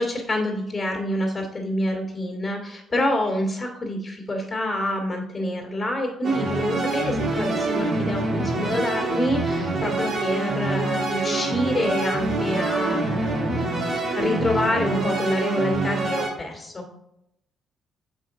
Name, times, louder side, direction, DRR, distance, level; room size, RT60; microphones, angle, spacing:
voice 1, 0.0-16.8, left 1 dB, 30° left, -2 dB, 2.0 m, -27 dB
sound 1, 6.2-16.3, right 2 dB, 60° right, 1.5 m, -25 dB
6.2 x 5.3 x 3.7 m, 0.79 s
cardioid pair, 90°, 0 cm